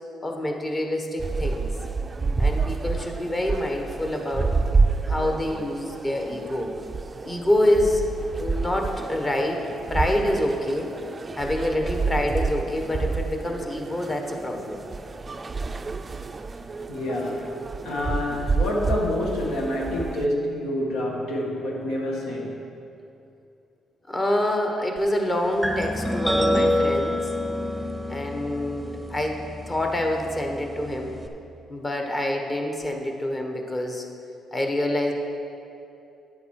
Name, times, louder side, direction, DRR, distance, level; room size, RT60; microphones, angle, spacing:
voice 1, 0.2-1.7 2.4-4.6 5.1-6.7 7.2-8.1 8.3-9.6 9.9-10.9 11.4-14.8 24.1-27.3 28.1-31.1 31.7-34.1 34.5-35.1, left 1 dB, 25° left, 3 dB, 1.3 m, -26 dB
sound 1, 1.2-20.3, right 4 dB, 30° right, 0.4 m, -29 dB
voice 2, 16.9-17.6 17.8-22.6, left 1 dB, 85° left, -1 dB, 1.8 m, -27 dB
sound 2, 25.6-31.3, left 1 dB, ahead, 0.9 m, -27 dB
9.9 x 8.0 x 4.8 m, 2.7 s
cardioid pair, 90°, 0 cm